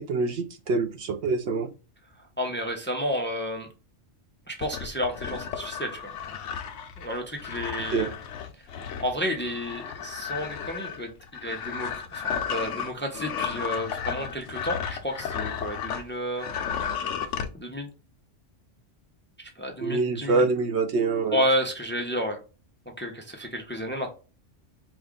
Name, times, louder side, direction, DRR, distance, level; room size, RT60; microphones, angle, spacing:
voice 1, 0.0-1.7 7.9-8.1 19.8-21.4, right 4 dB, 65° right, 8 dB, 0.8 m, -25 dB
voice 2, 2.4-3.7 4.5-6.1 7.0-8.1 9.0-11.1 11.4-16.5 17.5-17.9 19.6-20.4 21.3-22.4 23.0-24.1, equal, 10° left, 3 dB, 0.6 m, -31 dB
sound 1, 4.6-16.1 16.4-17.5, left 7 dB, 75° left, 1.0 m, -33 dB
4.9 x 2.4 x 3.6 m, 0.33 s
omnidirectional pair, 1.3 m